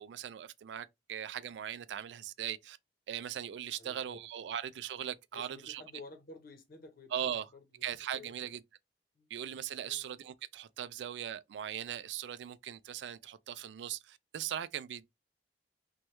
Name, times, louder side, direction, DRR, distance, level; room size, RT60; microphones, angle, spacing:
voice 1, 0.0-2.8 3.1-5.8 7.1-7.5 7.8-8.6 9.3-15.1, right 9 dB, 85° right, 0.3 m, -39 dB
voice 2, 3.8-4.5 5.3-8.5 9.1-9.3 9.8-10.1, left 3 dB, 55° left, 0.9 m, -53 dB
3.1 x 2.3 x 2.9 m
head